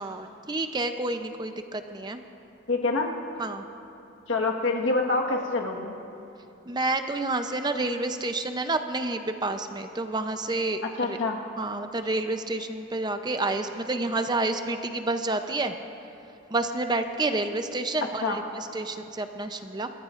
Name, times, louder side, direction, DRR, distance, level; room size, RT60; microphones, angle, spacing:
voice 1, 0.0-2.2 3.4-3.6 6.7-11.2 11.6-15.7 16.5-19.9, right 2 dB, 20° right, 7 dB, 0.6 m, -29 dB
voice 2, 2.7-3.1 4.3-6.0 11.0-11.4 18.2-18.4, left 3 dB, 70° left, 1 dB, 1.5 m, -26 dB
28.5 x 15.0 x 2.5 m, 2.8 s
head